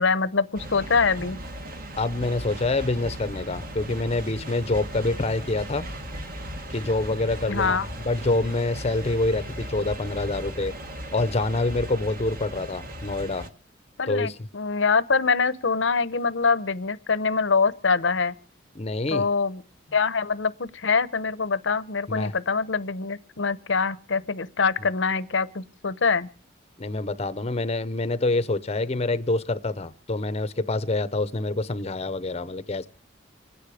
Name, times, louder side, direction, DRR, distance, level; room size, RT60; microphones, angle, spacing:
voice 1, 0.0-1.4 7.5-7.9 14.0-18.3 19.1-19.6 19.9-26.3, left 5 dB, 80° left, 0.9 m, -24 dB
sound 1, 0.5-13.5, equal, 50° right, 1.7 m, -37 dB
voice 2, 2.0-5.9 6.7-10.7 11.1-13.5 14.1-14.4 18.7-19.3 22.1-22.3 26.8-32.9, left 2 dB, 35° left, 0.7 m, -26 dB
26.5 x 10.0 x 4.9 m
head